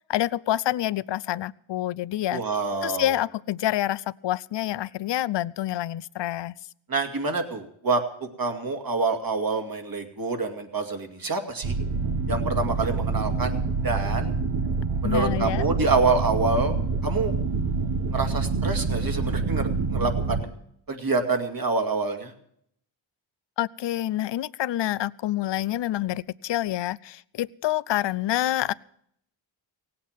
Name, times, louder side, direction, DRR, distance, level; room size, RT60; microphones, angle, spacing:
voice 1, 0.1-2.4 2.8-6.5 15.0-15.6 23.6-28.7, left 13 dB, 60° left, 20 dB, 0.5 m, -27 dB
voice 2, 2.3-3.2 6.9-11.7 12.3-13.5 13.8-14.3 15.0-16.8 17.0-17.3 18.1-20.5 20.9-22.3, right 3 dB, 45° right, 5 dB, 2.3 m, -27 dB
sound 1, 11.6-20.4, right 4 dB, 75° right, 1.6 m, -26 dB
17.5 x 8.7 x 7.3 m, 0.69 s
cardioid pair, 70°, 48 cm